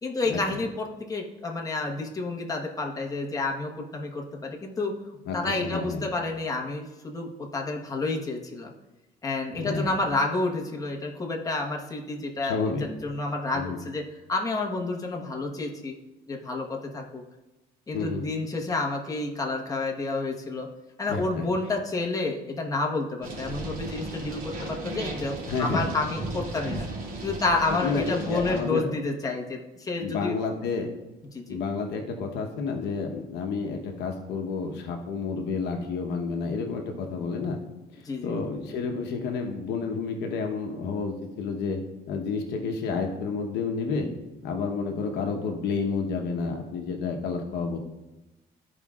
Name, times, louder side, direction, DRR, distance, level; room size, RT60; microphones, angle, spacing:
voice 1, 0.0-4.9 5.3-8.7 9.2-12.6 13.0-14.0 14.3-16.0 16.3-17.2 17.9-20.7 21.0-26.9 27.2-30.3 31.3-31.6 38.0-38.3, left 3 dB, 20° left, -1 dB, 1.3 m, -29 dB
voice 2, 5.2-6.0 9.5-9.9 12.4-12.8 13.5-13.8 17.9-18.2 21.1-21.4 25.5-25.9 27.8-28.9 30.0-30.9 31.5-37.6 38.2-41.8 42.1-44.1 44.4-47.8, left 4 dB, 80° left, 3 dB, 1.1 m, -30 dB
sound 1, 23.2-28.6, right 2 dB, 55° right, 2.6 m, -35 dB
13.5 x 5.0 x 2.4 m, 1.0 s
cardioid pair, 110°, 17 cm